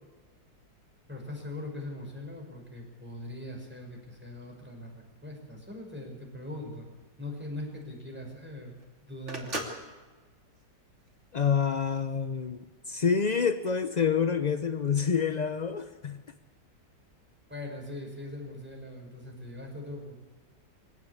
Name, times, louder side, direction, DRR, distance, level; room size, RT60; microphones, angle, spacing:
voice 1, 1.1-6.9 7.2-8.7 9.0-9.6 17.5-20.1, left 1 dB, 5° right, 0 dB, 6.0 m, -41 dB
Telephone, 6.8-11.6, right 1 dB, 40° right, 3.1 m, -41 dB
voice 2, 11.3-16.2, left 6 dB, 60° left, 9 dB, 0.4 m, -27 dB
23.0 x 17.5 x 8.7 m, 1.3 s
omnidirectional pair, 1.9 m